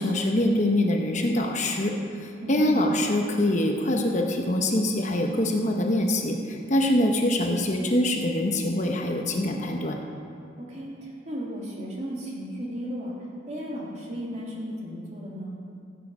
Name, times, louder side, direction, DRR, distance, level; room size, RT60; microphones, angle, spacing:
voice 1, 0.0-2.0 2.5-10.0, left 1 dB, 40° left, 2 dB, 0.9 m, -24 dB
voice 2, 2.4-2.8 10.7-13.1 13.5-15.6, equal, 35° right, -4 dB, 2.7 m, -35 dB
16.0 x 8.3 x 5.4 m, 2.5 s
head